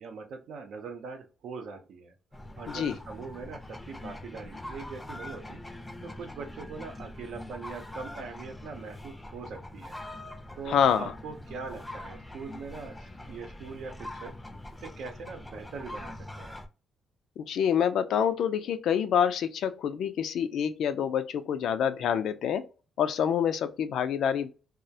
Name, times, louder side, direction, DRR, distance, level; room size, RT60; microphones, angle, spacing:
voice 1, 0.0-2.1 2.6-5.6 6.0-10.0 10.6-14.4 14.8-16.6, right 4 dB, 70° right, 0.6 m, -42 dB
sound 1, 2.3-16.7, left 1 dB, 10° left, 0.5 m, -43 dB
voice 2, 10.7-11.1 17.4-22.6 23.0-24.5, left 8 dB, 75° left, 0.3 m, -27 dB
2.3 x 2.1 x 2.7 m
cardioid pair, 90°, 0 cm